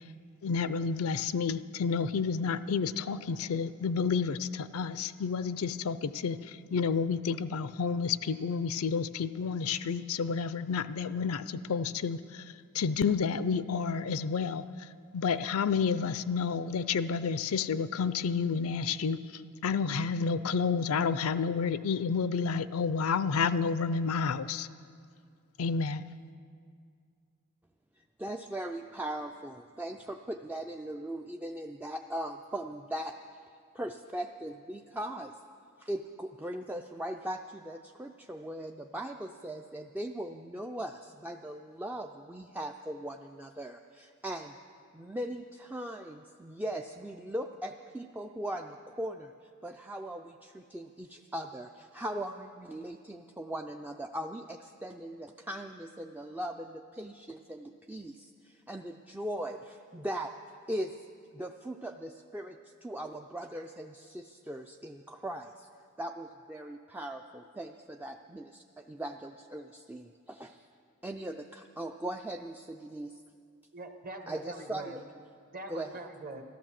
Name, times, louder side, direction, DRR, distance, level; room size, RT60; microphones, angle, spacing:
voice 1, 0.4-12.4 12.7-14.9 15.1-24.7 25.6-26.0, left 5 dB, 75° left, 15 dB, 0.4 m, -30 dB
voice 2, 28.0-33.2 33.7-35.3 35.8-44.5 44.9-60.3 60.7-60.9 61.3-65.7 66.0-70.7 71.0-73.2 74.3-75.0 75.7-75.9, right 1 dB, 10° right, 3 dB, 0.3 m, -39 dB
voice 3, 73.7-74.9 75.5-76.4, right 2 dB, 40° right, 5 dB, 1.2 m, -43 dB
13.5 x 12.0 x 7.5 m, 2.2 s
head